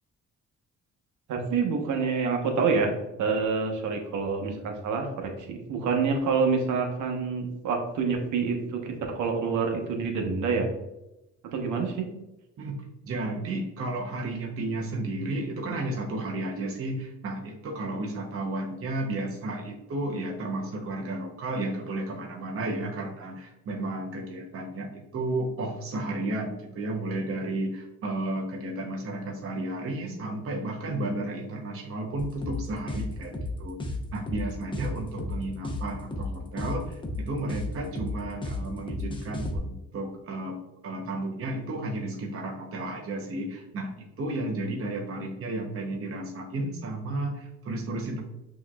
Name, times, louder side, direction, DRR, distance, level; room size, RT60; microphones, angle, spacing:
voice 1, 1.3-2.9 3.2-10.7 11.5-12.0, right 5 dB, 75° right, 3 dB, 1.0 m, -27 dB
voice 2, 12.6-33.8 34.1-40.6 40.8-48.2, right 2 dB, 45° right, 1 dB, 0.8 m, -33 dB
sound 1, 32.2-39.6, left 2 dB, 15° left, 0.7 m, -33 dB
6.0 x 3.0 x 2.3 m, 0.92 s
cardioid pair, 90°, 30 cm